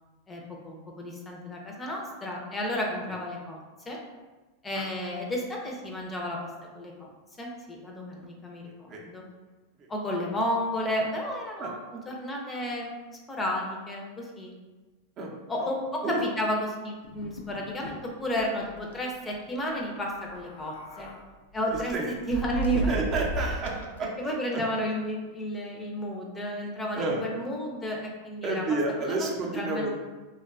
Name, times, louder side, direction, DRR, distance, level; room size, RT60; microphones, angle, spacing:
voice 1, 0.3-3.6 3.9-4.0 4.6-7.1 7.4-9.2 9.9-12.9 13.3-14.5 15.5-21.1 21.5-23.0 23.4-23.5 24.2-28.6 29.0-29.1 29.5-30.0, equal, 20° left, -1 dB, 0.5 m, -32 dB
voice 2, 8.6-9.0 9.8-9.9 11.6-11.7 15.2-15.3 15.6-15.7 16.0-16.2 21.9-22.1 22.9-23.7 24.0-24.6 27.0-27.2 28.4-30.0, right 2 dB, 40° right, -1 dB, 0.5 m, -30 dB
sound 1, 17.0-18.0 18.4-18.5 18.8-19.0 20.2-21.2 21.7-24.0, right 2 dB, 85° left, 0.3 m, -34 dB
2.5 x 2.2 x 2.4 m, 1.2 s
hypercardioid pair, 105°, 0 cm